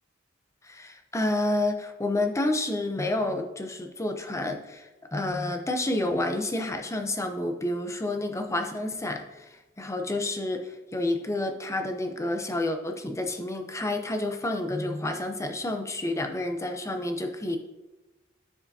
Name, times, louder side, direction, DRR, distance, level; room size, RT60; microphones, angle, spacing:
voice 1, 0.6-9.5 9.8-17.6, left 2 dB, 15° left, 5 dB, 0.7 m, -29 dB
13.0 x 4.9 x 2.7 m, 1.1 s
head